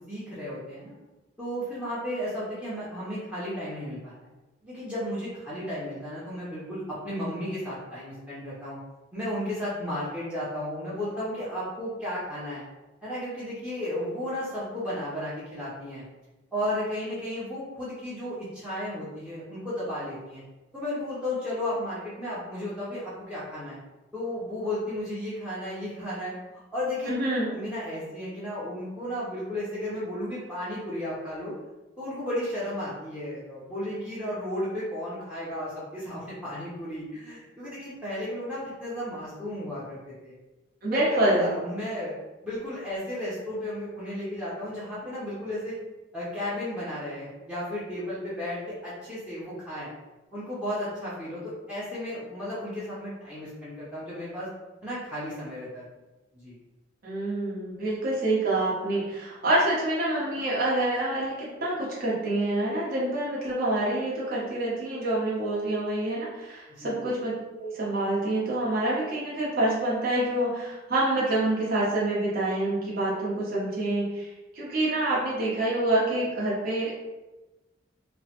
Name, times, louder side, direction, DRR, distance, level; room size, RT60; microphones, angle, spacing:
voice 1, 0.1-1.0 1.4-4.3 4.6-8.8 9.1-12.6 13.0-16.0 16.5-20.4 20.7-23.8 24.1-26.3 26.7-27.1 27.4-31.5 32.0-40.3 40.9-42.1 42.4-45.8 46.1-49.9 50.3-54.5 54.8-55.8 56.3-56.6 66.7-66.9, left 1 dB, 5° right, -10 dB, 0.6 m, -34 dB
voice 2, 27.1-27.5 40.8-41.6 57.0-67.3 67.6-74.3 74.5-76.9, right 1 dB, 50° right, -6 dB, 0.9 m, -27 dB
3.0 x 2.1 x 2.8 m, 1.1 s
head